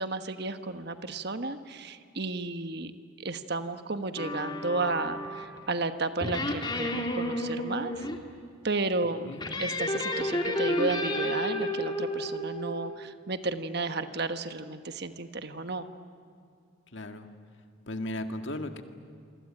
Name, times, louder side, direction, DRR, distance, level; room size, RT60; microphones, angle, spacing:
voice 1, 0.0-2.9 3.2-8.1 8.6-9.3 9.6-15.9, right 3 dB, 50° right, 9 dB, 1.3 m, -33 dB
sound 1, 4.2-5.6 6.2-8.2 9.4-12.9, left 1 dB, 20° left, 2.5 m, -31 dB
voice 2, 16.9-17.3 17.9-18.8, left 1 dB, 60° left, 6 dB, 2.0 m, -35 dB
28.0 x 24.0 x 8.8 m, 2.5 s
head